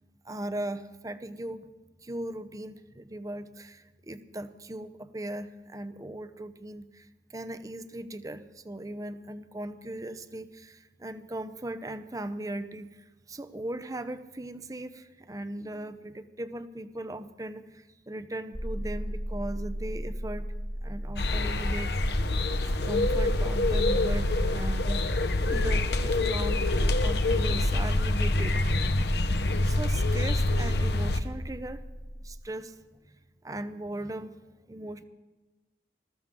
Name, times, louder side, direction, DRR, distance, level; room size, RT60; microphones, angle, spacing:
voice 1, 0.2-1.6 2.0-12.9 13.3-20.5 20.8-21.9 22.7-26.7 27.0-28.6 29.6-31.8 32.2-32.8 33.4-34.4 34.7-35.0, right 1 dB, 20° right, 12 dB, 0.7 m, -38 dB
sound 1, 18.5-32.4, equal, ahead, 1.2 m, -38 dB
sound 2, 21.2-31.2, left 2 dB, 70° left, 0.9 m, -26 dB
20.5 x 14.0 x 3.7 m, 1.2 s
head